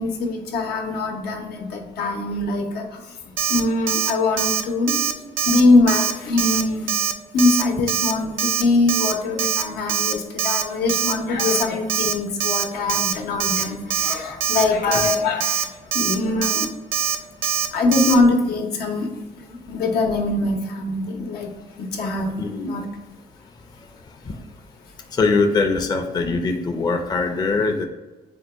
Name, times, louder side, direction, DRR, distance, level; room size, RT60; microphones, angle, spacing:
voice 1, 0.0-3.0 3.5-6.9 7.3-16.7 17.7-19.1 19.5-21.5 21.8-22.3 22.6-22.8, left 3 dB, 90° left, 2 dB, 0.8 m, -22 dB
Alarm, 3.4-3.6 3.9-4.1 4.4-4.6 4.9-5.1 5.4-5.6 5.9-6.1 6.4-6.6 6.9-7.1 7.4-7.6 7.9-8.1 8.4-8.6 8.9-9.1 9.4-9.6 9.9-10.1 10.4-10.6 10.9-11.1 11.4-11.6 11.9-12.1 12.4-12.6 12.9-13.1 13.4-13.6 13.9-14.1 14.4-14.6 14.9-15.1 15.4-15.6 15.9-16.1 16.4-16.6 16.9-17.2 17.4-17.7 17.9-18.1, right 8 dB, 65° right, 0.4 m, -22 dB
voice 2, 22.4-22.7 24.3-24.4 25.1-27.9, left 3 dB, 25° left, 4 dB, 0.4 m, -22 dB
4.5 x 2.2 x 4.3 m, 1.2 s
cardioid pair, 120°, 16 cm